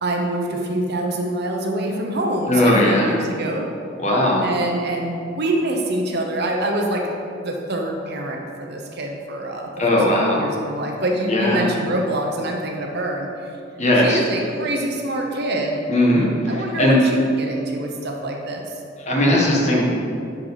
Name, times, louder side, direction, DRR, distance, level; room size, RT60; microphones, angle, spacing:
voice 1, 0.0-3.7 4.4-7.1 7.4-13.5 13.9-15.9 16.5-18.7, right 1 dB, 60° right, 1 dB, 1.0 m, -25 dB
voice 2, 2.5-3.2 4.0-4.4 9.8-10.4 11.3-11.7 13.8-14.2 15.9-17.0 19.0-19.8, left 1 dB, 35° left, -3 dB, 1.5 m, -18 dB
11.0 x 4.7 x 4.1 m, 2.4 s
head